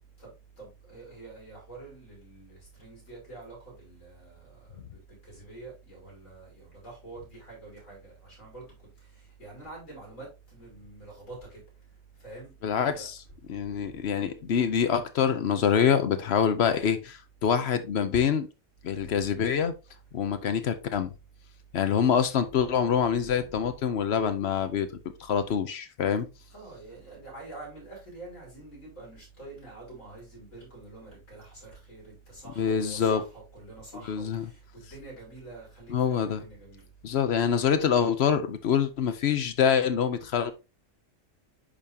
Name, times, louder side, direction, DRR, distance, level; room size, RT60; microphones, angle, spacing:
voice 1, 0.6-11.6 12.2-12.5 12.9-13.1 13.6-14.0 19.0-19.4 22.4-23.8 26.5-36.9, right 2 dB, 75° left, 4.9 m, -47 dB
voice 2, 12.6-13.2 13.5-18.5 18.8-19.7 20.1-21.1 21.7-24.9 25.2-26.3 32.6-33.2 34.1-34.5 35.9-36.4 37.0-40.5, left 7 dB, 60° left, 0.9 m, -25 dB
10.0 x 3.6 x 2.7 m
omnidirectional pair, 1.4 m